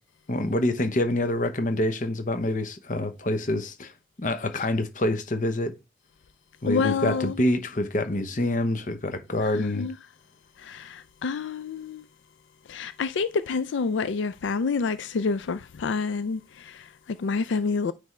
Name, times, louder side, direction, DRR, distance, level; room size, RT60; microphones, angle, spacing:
voice 1, 0.3-3.9 4.2-5.8 6.6-9.9, left 1 dB, 45° left, 0.8 m, -26 dB
voice 2, 6.7-7.4 9.4-10.0 10.6-12.0 12.7-17.9, left 4 dB, 85° left, 0.4 m, -28 dB
9.5 x 3.4 x 3.2 m
head